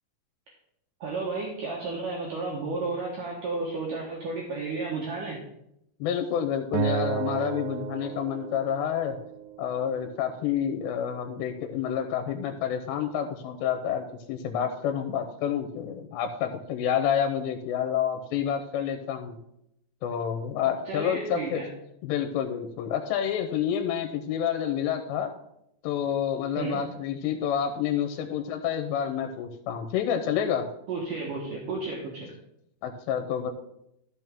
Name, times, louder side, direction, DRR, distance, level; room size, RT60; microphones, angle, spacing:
voice 1, 1.0-5.4 20.9-21.7 26.6-26.8 30.9-32.3, right 3 dB, 65° right, -3 dB, 2.3 m, -32 dB
voice 2, 6.0-9.2 9.6-19.4 20.0-21.6 22.0-25.3 25.8-30.7 32.8-33.5, left 9 dB, 85° left, 5 dB, 2.9 m, -29 dB
Acoustic guitar, 6.7-10.0, right 8 dB, 90° right, 2.9 m, -32 dB
12.5 x 6.2 x 3.5 m, 0.79 s
omnidirectional pair, 5.1 m